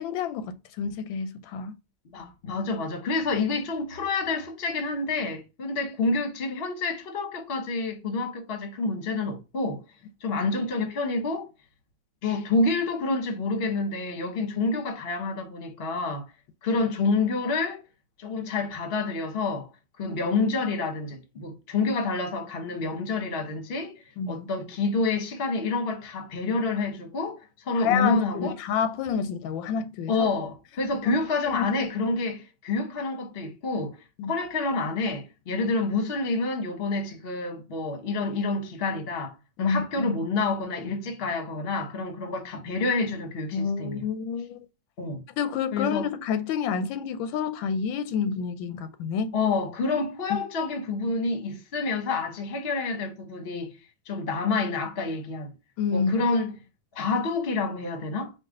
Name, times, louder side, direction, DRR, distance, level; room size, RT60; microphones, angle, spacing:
voice 1, 0.0-1.7 24.2-24.5 27.8-30.3 31.0-31.2 31.5-31.9 34.2-34.3 39.6-40.1 43.5-44.6 45.4-49.3 55.8-56.1, left 6 dB, 85° left, 1.3 m, -29 dB
voice 2, 2.1-9.8 10.2-11.5 12.2-16.2 16.6-17.8 18.2-19.7 20.0-28.5 30.1-34.0 34.3-44.0 45.0-45.2 45.7-46.1 49.3-53.7 54.1-55.5 55.9-56.5 56.9-58.3, left 3 dB, 40° left, 0.9 m, -28 dB
4.7 x 2.6 x 3.6 m
omnidirectional pair, 2.0 m